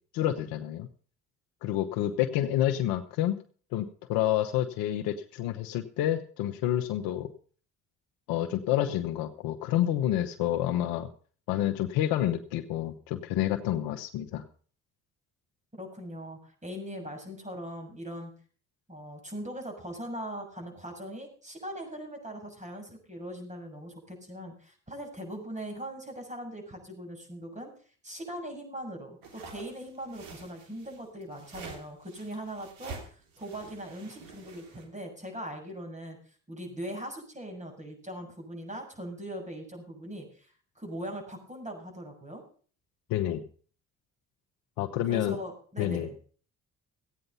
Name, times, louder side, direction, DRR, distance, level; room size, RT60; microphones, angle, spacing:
voice 1, 0.1-0.9 1.6-3.4 3.7-7.3 8.3-11.1 11.5-14.4 43.1-43.4 44.8-45.4 45.8-46.1, left 12 dB, 90° left, 6 dB, 1.0 m, -28 dB
voice 2, 15.8-18.3 18.9-27.7 28.0-36.2 36.5-42.4 45.1-46.2, right 1 dB, 20° right, 3 dB, 6.8 m, -40 dB
sound 1, 29.2-34.8, right 4 dB, 80° right, 3.1 m, -47 dB
15.5 x 9.2 x 5.5 m, 0.44 s
supercardioid pair, 65°, 34 cm